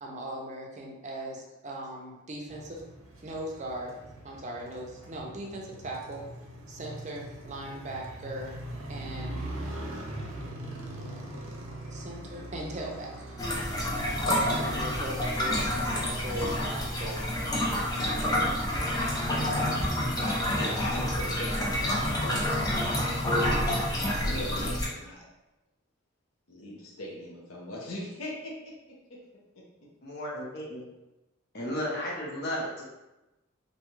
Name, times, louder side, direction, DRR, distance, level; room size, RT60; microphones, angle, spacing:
voice 1, 0.0-2.8 3.2-4.0 4.2-6.2 6.7-9.4 9.8-10.8 11.8-13.4 14.2-17.5, right 1 dB, 35° right, -1 dB, 0.5 m, -39 dB
Motorcycle, 2.5-15.1, right 1 dB, 85° right, 0.6 m, -41 dB
sound 1, 13.4-24.9, left 1 dB, 20° left, 0.4 m, -28 dB
voice 2, 17.9-18.6 20.3-25.3 26.5-29.2 29.5-29.6, left 1 dB, 90° left, -4 dB, 0.7 m, -40 dB
voice 3, 30.0-30.9 31.5-32.8, equal, 50° left, -4 dB, 0.8 m, -34 dB
2.7 x 2.3 x 3.1 m, 0.99 s
head